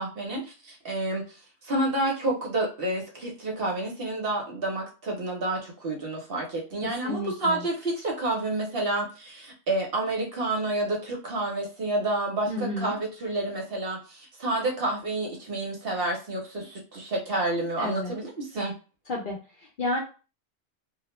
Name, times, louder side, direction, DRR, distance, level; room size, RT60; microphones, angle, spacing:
voice 1, 0.0-18.7, right 2 dB, 55° right, 0 dB, 0.8 m, -29 dB
voice 2, 6.8-7.7 12.5-13.0 17.8-18.1 19.1-20.0, left 1 dB, 55° left, -2 dB, 0.6 m, -32 dB
2.3 x 2.1 x 2.9 m, 0.34 s
omnidirectional pair, 1.3 m